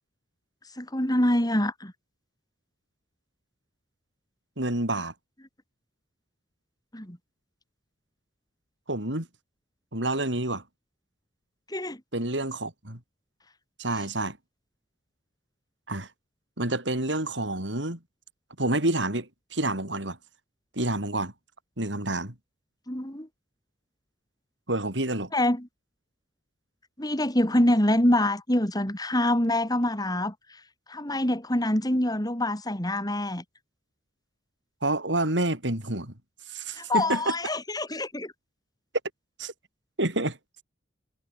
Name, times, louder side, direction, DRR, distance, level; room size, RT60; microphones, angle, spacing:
voice 1, 0.8-1.9 6.9-7.2 11.7-12.0 22.9-23.3 25.3-25.7 27.0-30.3 30.9-33.4 36.8-38.3, left 1 dB, 20° left, 5.6 m, -25 dB
voice 2, 4.6-5.1 8.9-9.3 9.9-10.6 12.1-13.0 13.8-14.4 15.9-16.1 16.6-18.0 18.6-20.2 20.7-21.3 21.8-22.3 24.7-25.3 34.8-36.1 36.5-37.3 39.4-39.5 40.0-40.4, right 2 dB, 80° right, 6.6 m, -28 dB
head